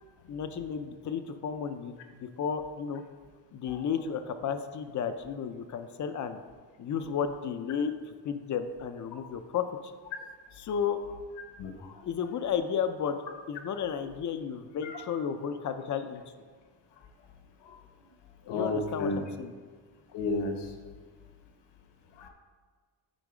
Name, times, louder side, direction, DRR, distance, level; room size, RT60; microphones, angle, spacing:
voice 1, 0.3-1.9 2.2-3.0 3.5-6.4 6.8-7.9 8.2-9.6 10.6-11.0 12.1-13.2 13.5-16.2 18.5-19.5, left 7 dB, 45° left, 9 dB, 0.5 m, -33 dB
voice 2, 11.6-11.9 14.8-14.9 17.6-17.8 18.5-19.2 20.1-20.7 22.2-22.3, left 3 dB, 70° left, 4 dB, 1.2 m, -32 dB
9.0 x 4.1 x 4.8 m, 1.5 s
cardioid pair, 165°, 44 cm